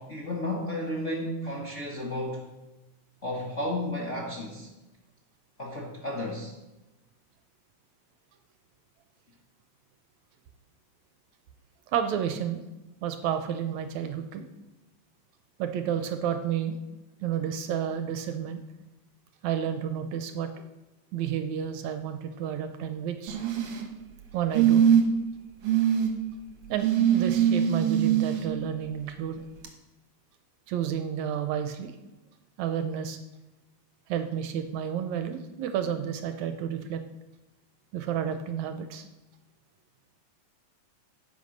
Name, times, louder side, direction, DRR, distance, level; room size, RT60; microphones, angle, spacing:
voice 1, 0.0-2.4 3.2-4.7 5.6-6.5, left 1 dB, 35° left, -3 dB, 1.3 m, -33 dB
voice 2, 11.9-12.6 13.0-14.5 15.6-16.8 17.2-18.6 19.4-20.5 21.1-23.4 24.3-24.9 26.7-29.4 30.7-31.9 32.6-33.2 34.1-37.0 37.9-39.1, right 9 dB, 75° right, 8 dB, 2.0 m, -31 dB
sound 1, 23.3-23.8 24.5-25.2 25.7-26.1 26.8-28.4 29.6-29.7, right 9 dB, 60° right, 2.0 m, -22 dB
10.5 x 8.3 x 5.3 m, 1.0 s
omnidirectional pair, 3.5 m